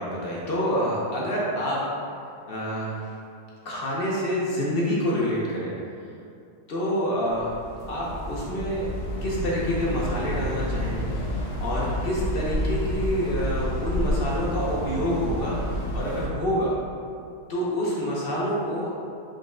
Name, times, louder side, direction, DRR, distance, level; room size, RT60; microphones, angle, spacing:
voice 1, 0.0-1.8 2.5-2.9 3.6-5.7 6.7-7.5 7.9-8.9 9.2-16.7 17.5-18.9, equal, 55° left, -5 dB, 0.6 m, -27 dB
sound 1, 7.3-16.3, equal, 90° left, 1.3 m, -29 dB
5.1 x 2.1 x 3.6 m, 2.4 s
omnidirectional pair, 1.7 m